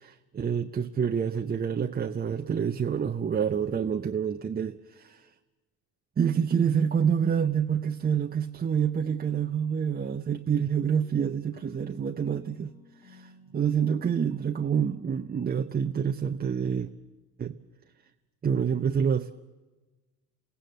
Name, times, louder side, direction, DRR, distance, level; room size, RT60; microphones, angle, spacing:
voice 1, 0.0-5.3 6.2-12.7 13.0-16.9 17.4-17.5 18.4-19.3, right 7 dB, 20° right, 7 dB, 0.8 m, -27 dB
sound 1, 10.8-15.5, left 7 dB, 65° left, 2.8 m, -56 dB
29.0 x 17.0 x 7.9 m, 1.3 s
figure-of-eight pair, 60°, 48 cm